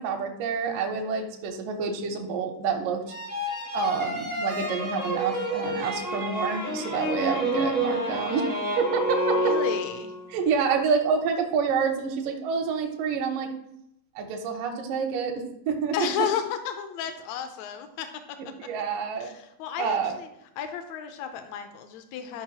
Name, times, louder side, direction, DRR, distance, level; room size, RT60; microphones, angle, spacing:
voice 1, 0.0-3.0 3.7-8.5 8.8-9.3 10.3-13.5 14.2-16.1 18.6-19.3 19.8-20.2, right 6 dB, 80° right, 3 dB, 2.4 m, -28 dB
sound 1, 3.1-10.3, equal, 25° left, 0.4 m, -29 dB
voice 2, 9.3-10.1 15.9-18.4 19.2-20.3 20.6-22.4, left 8 dB, 75° left, 7 dB, 1.7 m, -33 dB
12.0 x 5.5 x 2.9 m, 0.80 s
omnidirectional pair, 3.9 m